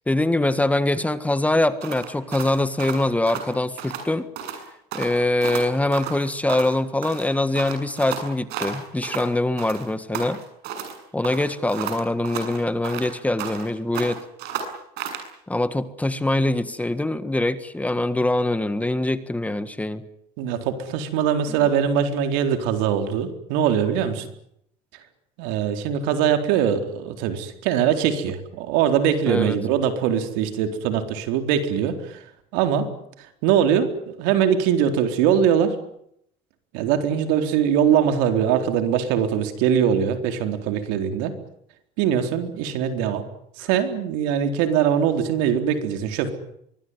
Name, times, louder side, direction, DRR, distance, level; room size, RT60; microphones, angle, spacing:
voice 1, 0.1-4.3 4.9-10.4 11.1-14.2 15.5-20.1 29.3-29.6, left 2 dB, 10° left, 12 dB, 1.6 m, -23 dB
sound 1, 1.8-4.1 4.4-4.6 4.9-6.8 7.0-9.3 9.6-11.0 11.2-13.7 13.9-15.3, right 7 dB, 70° right, 7.2 m, -33 dB
voice 2, 20.4-24.3 25.4-32.2 32.5-32.9 33.4-35.8 36.7-41.3 42.0-43.2 43.6-46.3, right 8 dB, 85° right, 7 dB, 4.1 m, -22 dB
24.5 x 21.0 x 9.8 m, 0.73 s
cardioid pair, 125°, 18 cm